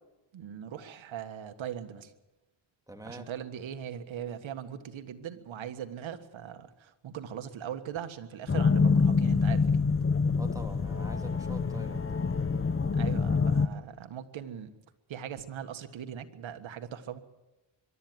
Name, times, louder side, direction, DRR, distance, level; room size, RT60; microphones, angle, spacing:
voice 1, 0.3-2.1 3.0-9.9 13.0-14.7 15.1-17.2, right 9 dB, 80° right, 8 dB, 1.6 m, -40 dB
voice 2, 2.9-3.3 10.4-12.2, right 1 dB, 5° right, 3 dB, 3.3 m, -45 dB
sound 1, 8.5-13.7, left 4 dB, 30° left, 1.1 m, -26 dB
23.0 x 12.5 x 9.3 m, 1.0 s
cardioid pair, 80°, 46 cm